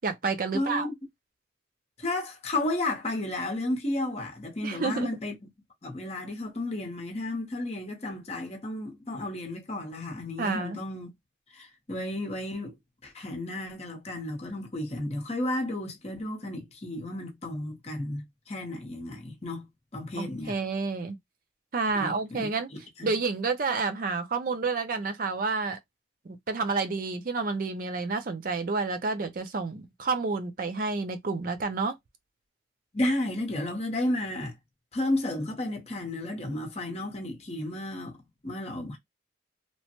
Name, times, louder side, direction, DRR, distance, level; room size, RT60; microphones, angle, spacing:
voice 1, 0.0-0.9 4.6-5.1 10.4-10.8 20.2-21.1 21.7-22.7 23.0-25.8 26.3-32.0, right 4 dB, 50° right, 0.4 m, -29 dB
voice 2, 0.5-0.9 2.0-5.5 5.8-11.1 11.5-12.7 13.0-19.7 19.9-20.5 21.9-23.1 32.9-34.5 34.9-39.0, left 1 dB, 35° left, 0.8 m, -33 dB
3.0 x 2.1 x 2.9 m
head